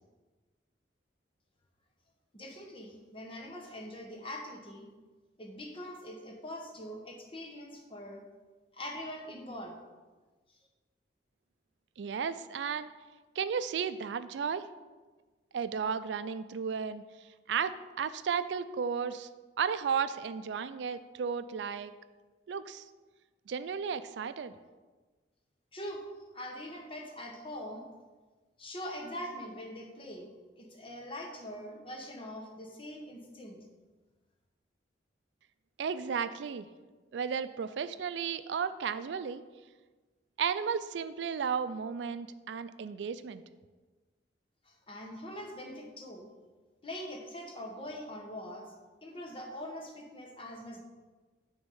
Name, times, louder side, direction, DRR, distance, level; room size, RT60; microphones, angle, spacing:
voice 1, 2.3-4.9 5.4-8.2 8.7-9.8 25.7-26.0 26.3-27.8 28.6-30.3 30.6-33.6 44.7-46.3 46.8-48.7 49.0-50.8, left 1 dB, 30° left, 1 dB, 1.1 m, -43 dB
voice 2, 12.0-12.9 13.4-14.7 15.5-17.0 17.5-19.3 19.6-21.9 22.5-22.8 23.5-24.5 35.8-36.7 37.1-39.4 40.4-43.4, right 6 dB, 75° right, 13 dB, 0.4 m, -34 dB
9.6 x 3.6 x 5.4 m, 1.3 s
head